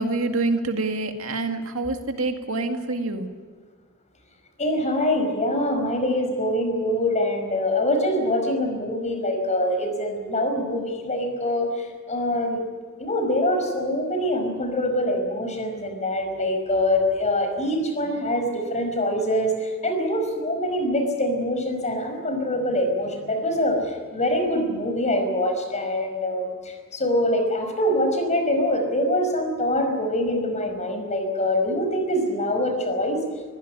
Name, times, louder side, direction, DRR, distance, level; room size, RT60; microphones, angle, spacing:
voice 1, 0.0-3.3, right 2 dB, 75° right, 5 dB, 2.1 m, -26 dB
voice 2, 4.6-11.7 12.1-12.6 13.0-19.5 19.8-23.8 24.1-26.5 26.9-33.2, left 1 dB, 35° left, 5 dB, 5.1 m, -24 dB
24.0 x 16.0 x 9.8 m, 1.5 s
head